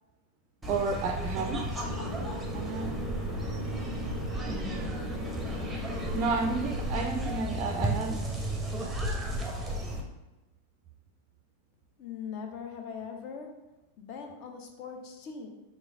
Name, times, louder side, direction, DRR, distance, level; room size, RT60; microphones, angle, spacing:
sound 1, 0.6-10.0, right 1 dB, 10° right, 0.7 m, -34 dB
voice 1, 0.7-1.8 2.5-3.1 4.5-8.3, right 4 dB, 35° right, 3 dB, 0.4 m, -33 dB
sound 2, 1.7-6.9, left 1 dB, 60° left, 1.0 m, -39 dB
voice 2, 12.0-13.7 14.0-15.5, left 6 dB, 45° left, 4 dB, 0.6 m, -41 dB
4.7 x 3.1 x 2.6 m, 1.1 s
figure-of-eight pair, 90°, 0 cm